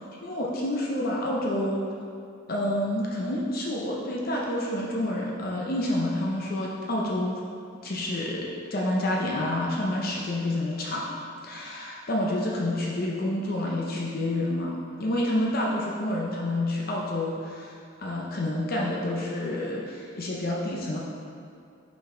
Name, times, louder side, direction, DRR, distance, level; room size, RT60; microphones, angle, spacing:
voice 1, 0.2-1.9 2.5-7.4 7.8-11.0 11.4-14.7 15.0-17.7 18.0-21.0, left 1 dB, 45° left, -3 dB, 0.6 m, -28 dB
5.6 x 5.2 x 3.7 m, 2.5 s
head